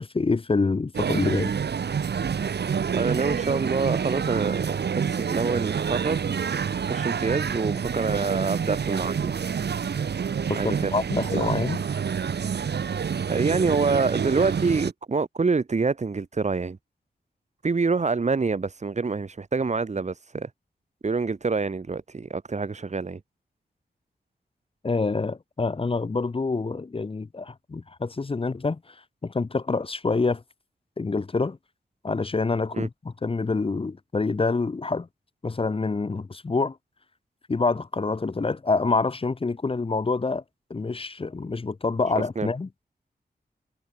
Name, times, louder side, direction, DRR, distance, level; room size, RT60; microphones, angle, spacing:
voice 1, 0.0-1.5 10.5-11.8 24.8-28.9 29.2-30.4 31.0-31.6 32.0-35.1 35.4-36.8 37.5-40.4 40.7-42.7, left 3 dB, 35° left, 1.2 m, -26 dB
sound 1, 0.9-14.9, right 7 dB, 90° right, 2.2 m, -27 dB
voice 2, 2.9-6.2 6.9-9.3 10.5-10.9 11.2-11.6 13.3-16.8 17.6-20.5 21.0-23.2 32.7-32.9 42.4-42.5, right 4 dB, 45° right, 3.9 m, -26 dB
wide cardioid pair, 135°, 17 cm